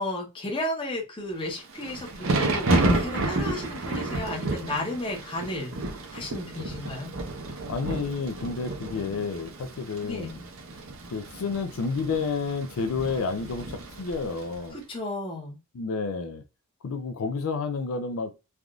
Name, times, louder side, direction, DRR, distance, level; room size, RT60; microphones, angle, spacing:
voice 1, 0.0-5.7 6.1-7.1 10.0-10.4 14.7-15.6, left 1 dB, 25° left, 0.9 m, -33 dB
Thunder / Rain, 1.5-14.6, right 2 dB, 65° right, 0.7 m, -31 dB
voice 2, 7.7-10.3 11.1-14.8 15.7-16.4 16.8-18.3, left 4 dB, 70° left, 0.4 m, -30 dB
3.4 x 2.5 x 2.3 m
head